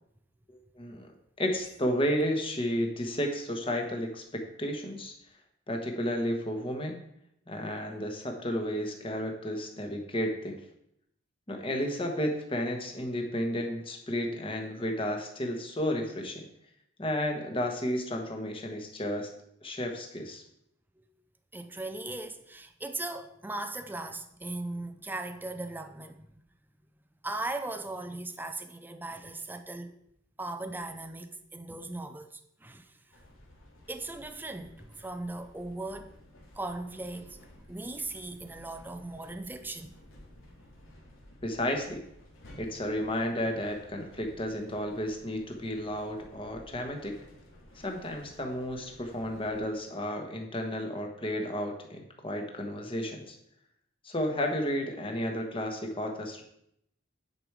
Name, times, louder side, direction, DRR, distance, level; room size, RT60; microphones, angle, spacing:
voice 1, 0.7-1.1 1.4-5.1 5.7-7.0 7.5-10.6 11.5-16.5 17.0-19.3 19.6-20.4 41.4-42.0 42.6-47.2 47.7-53.4 54.0-56.4, equal, 25° left, 1.3 m, -32 dB
voice 2, 21.5-26.3 27.2-29.9 30.4-32.9 33.9-36.1 36.6-37.4 37.7-39.9, right 2 dB, 10° right, 0.5 m, -38 dB
Interior Carriage Slow Moving Steam Train, 33.1-49.6, left 1 dB, 80° left, 2.5 m, -54 dB
9.9 x 5.2 x 4.7 m
head